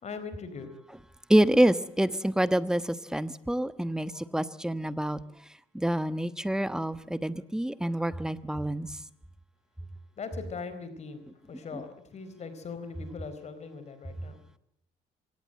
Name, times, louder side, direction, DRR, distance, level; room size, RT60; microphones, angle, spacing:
voice 1, 0.0-0.7 10.2-14.4, left 5 dB, 40° left, 11 dB, 4.2 m, -40 dB
voice 2, 1.3-5.2 5.7-8.9 11.7-11.8, right 1 dB, 5° right, 14 dB, 1.2 m, -27 dB
25.0 x 18.5 x 7.7 m, 0.80 s
cardioid pair, 110°, 17 cm